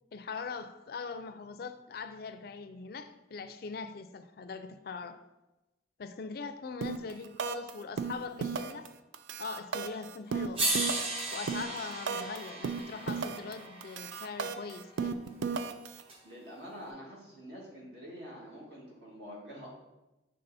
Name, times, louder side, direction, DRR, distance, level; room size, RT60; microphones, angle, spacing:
voice 1, 0.1-5.2 6.0-8.9 9.4-10.7 11.3-15.2, left 4 dB, 55° left, 10 dB, 0.4 m, -41 dB
sound 1, 6.8-7.1 7.4-7.7 8.0-8.9 9.1-12.4 12.6-13.5 13.8-16.0, right 5 dB, 80° right, 0.4 m, -34 dB
sound 2, 9.9-10.0 10.6-14.8 16.1-16.2, right 2 dB, 30° right, 0.7 m, -36 dB
voice 2, 16.2-19.7, equal, 60° right, -4 dB, 2.0 m, -46 dB
6.6 x 3.7 x 4.1 m, 1.0 s
head